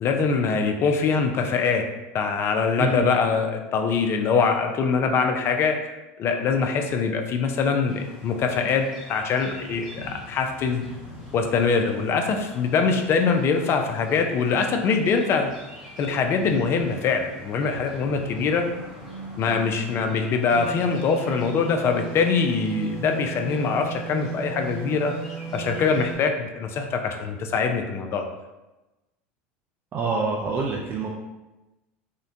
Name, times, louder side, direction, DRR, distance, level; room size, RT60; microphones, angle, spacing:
voice 1, 0.0-1.8 2.1-5.8 6.2-10.9 11.3-15.5 16.0-18.7 19.4-25.1 25.5-28.3, left 5 dB, 40° left, 5 dB, 0.4 m, -23 dB
voice 2, 2.8-3.1 29.9-31.1, right 4 dB, 35° right, -1 dB, 0.4 m, -26 dB
sound 1, 7.9-26.1, equal, ahead, 0.8 m, -43 dB
sound 2, 20.5-26.3, right 6 dB, 90° right, 0.7 m, -36 dB
3.7 x 2.1 x 2.6 m, 1.0 s
supercardioid pair, 115°, 7 cm